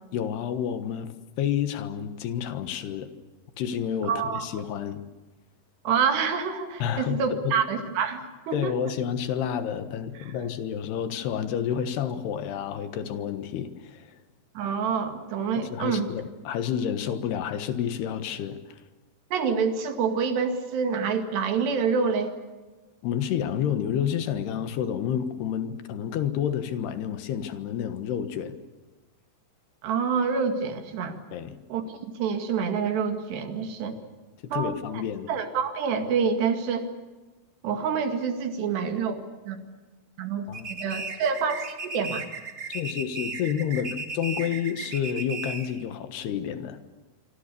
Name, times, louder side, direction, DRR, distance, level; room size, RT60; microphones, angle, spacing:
voice 1, 0.1-1.1 1.4-3.1 3.6-5.0 6.8-7.6 8.5-14.2 15.6-18.8 23.0-28.6 31.3-31.6 34.4-35.3 40.5-40.7 42.7-46.8, left 9 dB, 75° left, 10 dB, 3.4 m, -29 dB
voice 2, 4.0-4.5 5.9-8.7 10.2-10.3 14.6-16.1 19.3-22.3 29.8-31.2 31.7-31.8 32.2-33.9 34.5-35.0 35.3-36.9 37.6-39.2 39.5-39.6 40.2-42.3, right 6 dB, 75° right, 6 dB, 4.3 m, -27 dB
sound 1, 40.5-45.8, right 4 dB, 30° right, 2.0 m, -36 dB
25.5 x 25.5 x 6.9 m, 1.2 s
omnidirectional pair, 4.9 m